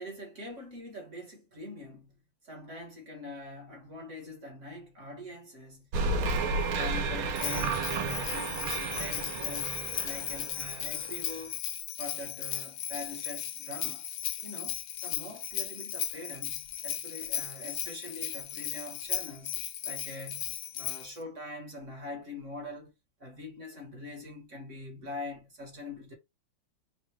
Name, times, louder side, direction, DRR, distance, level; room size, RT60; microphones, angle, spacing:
voice 1, 0.0-5.9 6.2-9.7 10.0-11.6 12.0-14.1 14.4-22.9 23.2-26.1, left 2 dB, 40° right, 1.5 m, -43 dB
sound 1, 5.9-11.4, right 3 dB, 85° right, 1.6 m, -32 dB
Bell, 7.3-21.2, left 11 dB, 85° left, 0.8 m, -36 dB
4.8 x 2.3 x 3.4 m
omnidirectional pair, 2.3 m